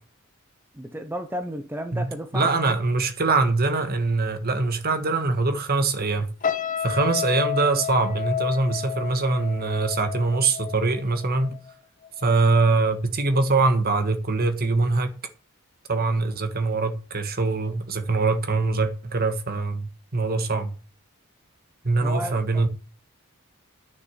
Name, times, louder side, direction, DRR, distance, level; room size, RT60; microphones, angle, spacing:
voice 1, 0.7-2.5 22.0-22.7, equal, 10° right, 0.8 m, -33 dB
voice 2, 2.3-6.3 6.8-11.6 12.2-15.1 15.9-20.7 21.8-22.7, right 3 dB, 45° right, 1.5 m, -23 dB
sound 1, 6.4-11.7 12.0-12.3, left 9 dB, 35° left, 0.6 m, -31 dB
10.5 x 6.6 x 5.9 m
head